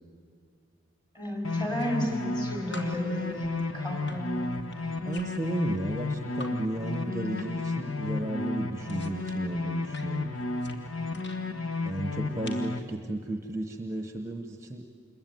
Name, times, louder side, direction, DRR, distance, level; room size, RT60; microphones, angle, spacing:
voice 1, 1.1-3.5 3.7-4.5, equal, 20° left, 1 dB, 5.1 m, -32 dB
sound 1, 1.4-12.8, left 3 dB, 90° left, 1.3 m, -33 dB
sound 2, 1.6-2.4 2.7-6.5 6.8-7.7 8.0-11.4 12.1-12.8, left 1 dB, 55° left, 2.8 m, -49 dB
voice 2, 5.1-10.3 11.8-14.8, right 1 dB, 15° right, 5 dB, 1.0 m, -34 dB
27.5 x 22.5 x 9.3 m, 2.2 s
head